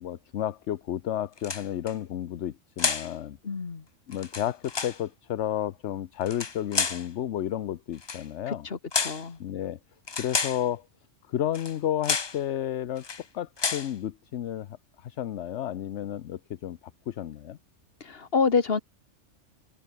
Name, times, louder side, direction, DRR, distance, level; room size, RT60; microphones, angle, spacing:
voice 1, 0.0-3.4 4.1-8.7 9.4-9.8 10.2-10.9 11.3-13.1 13.3-16.8 17.1-17.6, left 11 dB, 70° left, 1.0 m, -32 dB
sound 1, 1.4-1.9 2.8-3.1 4.1-5.0 6.2-7.1 8.0-8.2 8.9-9.3 10.1-10.6 11.5-11.8 12.0-12.4 13.0-13.2 13.6-13.9, left 5 dB, 30° left, 0.5 m, -30 dB
voice 2, 3.4-3.8 8.5-9.4 18.0-18.8, left 5 dB, 50° left, 1.8 m, -27 dB
omnidirectional pair, 1.3 m